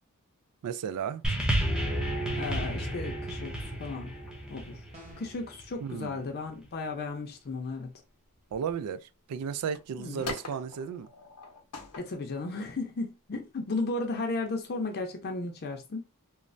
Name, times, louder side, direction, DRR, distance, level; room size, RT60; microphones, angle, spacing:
voice 1, 0.6-1.2 5.8-6.2 8.5-11.1, right 7 dB, 85° right, 0.3 m, -34 dB
sound 1, 1.2-5.8 6.6-6.7, right 1 dB, 5° right, 0.5 m, -31 dB
voice 2, 2.3-4.1 4.5-4.8 5.2-8.0 10.0-10.3 12.0-16.1, left 3 dB, 45° left, 0.5 m, -35 dB
sound 2, 4.1-4.6 4.9-5.2 6.2-6.3 6.5-6.6 7.0-7.1 7.5-7.9 8.3-8.7 9.3-12.0, left 3 dB, 90° left, 0.7 m, -43 dB
sound 3, 4.9-5.5, equal, 30° right, 0.8 m, -50 dB
3.1 x 2.1 x 2.5 m
head